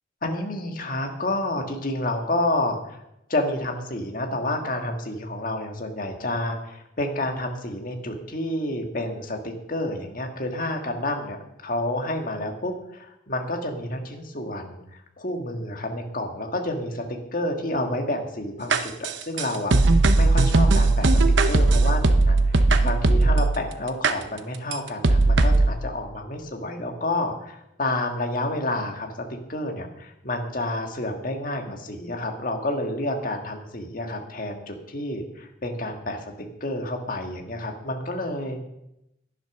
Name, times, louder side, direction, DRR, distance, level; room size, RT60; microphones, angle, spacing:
voice 1, 0.2-3.0 3.3-11.4 11.6-17.0 17.3-21.2 21.5-29.1 29.5-36.3 36.6-38.6, left 1 dB, 45° left, 3 dB, 1.7 m, -29 dB
sound 1, 18.7-23.6 24.0-24.1 24.7-24.8 25.0-25.7, right 2 dB, 70° right, 0.9 m, -18 dB
11.0 x 10.0 x 6.1 m, 0.85 s
head